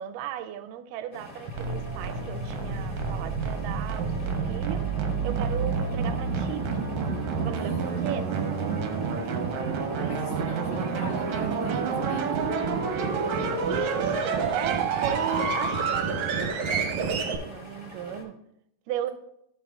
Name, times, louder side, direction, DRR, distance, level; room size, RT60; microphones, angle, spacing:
voice 1, 0.0-4.8 5.2-6.7 7.4-8.5 10.0-10.5 10.7-10.9 13.7-18.4 18.9-19.1, right 10 dB, 85° right, 10 dB, 2.2 m, -36 dB
sound 1, 1.1-18.2, left 1 dB, 25° left, 1.2 m, -45 dB
Machine Startup, 1.5-17.4, right 5 dB, 70° right, 2.0 m, -28 dB
voice 2, 10.0-12.5 15.2-15.5, left 3 dB, 75° left, 0 dB, 2.5 m, -43 dB
13.5 x 6.3 x 2.3 m, 0.76 s
omnidirectional pair, 3.8 m